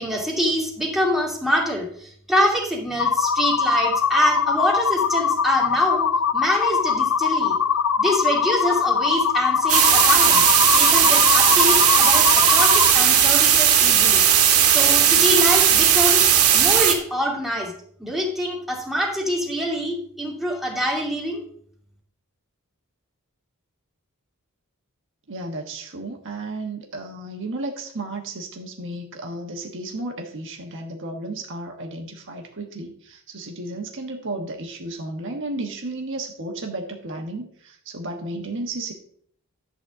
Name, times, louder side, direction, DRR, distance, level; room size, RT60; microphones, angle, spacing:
voice 1, 0.0-6.1 6.3-7.6 8.0-10.4 10.7-14.3 14.7-16.3 16.5-17.7 18.0-21.4, equal, ahead, -3 dB, 2.5 m, -25 dB
sound 1, 3.0-12.9, left 6 dB, 75° left, 0.7 m, -22 dB
sound 2, 9.7-16.9, right 9 dB, 90° right, 1.6 m, -16 dB
voice 2, 25.3-38.9, right 2 dB, 60° right, 2 dB, 1.3 m, -33 dB
11.0 x 4.2 x 7.3 m, 0.62 s
head